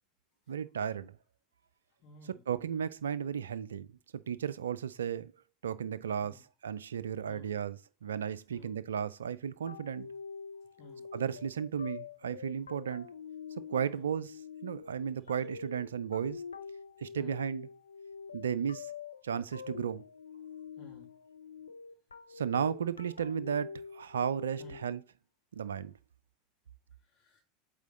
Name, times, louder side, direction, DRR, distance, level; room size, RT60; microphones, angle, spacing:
voice 1, 0.5-1.1 2.2-3.9 4.1-5.3 5.6-10.1 11.1-13.1 13.7-16.4 17.0-17.7 18.3-18.9 19.2-20.0 22.3-25.0 25.5-25.9, right 8 dB, 70° right, 0.3 m, -34 dB
voice 2, 2.0-2.4 6.2-6.4 7.3-7.5 8.5-8.8 10.6-11.1 13.9-14.1 15.2-15.3 17.1-17.4 20.8-21.2 24.6-24.8 27.0-27.4, left 2 dB, 45° left, 1.8 m, -54 dB
sound 1, 9.7-25.0, left 6 dB, 80° left, 0.6 m, -46 dB
8.1 x 3.7 x 3.9 m
figure-of-eight pair, 80°, 0 cm